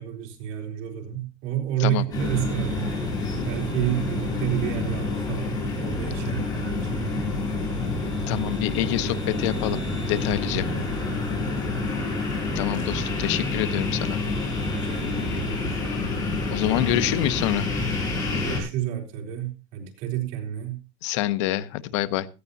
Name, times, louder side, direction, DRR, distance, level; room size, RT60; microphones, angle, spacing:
voice 1, 0.0-2.9 3.4-7.3 10.5-11.2 14.7-15.8 18.4-20.8, right 12 dB, 65° right, 3.9 m, -30 dB
sound 1, 2.1-18.6, left 3 dB, 25° left, 6.5 m, -28 dB
voice 2, 8.3-9.8 10.1-10.7 12.5-14.2 16.5-17.7 21.0-22.3, left 14 dB, 85° left, 0.9 m, -26 dB
16.5 x 14.5 x 2.7 m
cardioid pair, 165°, 15 cm